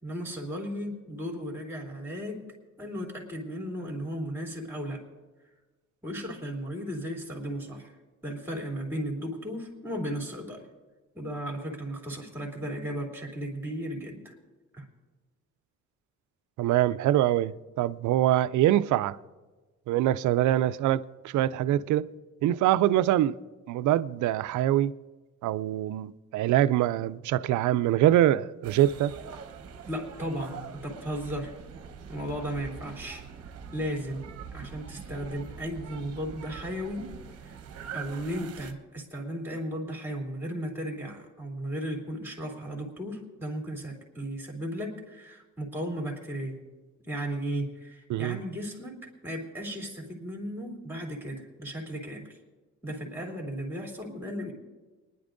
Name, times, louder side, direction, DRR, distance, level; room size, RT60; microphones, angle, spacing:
voice 1, 0.0-2.5 2.8-5.0 6.0-7.9 8.2-10.7 11.1-14.3 14.7-14.8 29.8-31.6 32.1-33.2 33.7-34.3 34.5-37.2 37.4-37.6 37.9-46.6 47.0-52.4 52.8-54.5, equal, 5° right, 3.1 m, -35 dB
voice 2, 16.6-19.2 19.9-22.1 22.4-23.4 23.7-24.9 25.4-29.1 48.1-48.4, right 13 dB, 75° right, 0.5 m, -24 dB
sound 1, 28.6-38.7, right 6 dB, 55° right, 1.0 m, -43 dB
29.5 x 10.5 x 2.6 m
cardioid pair, 90°, 30 cm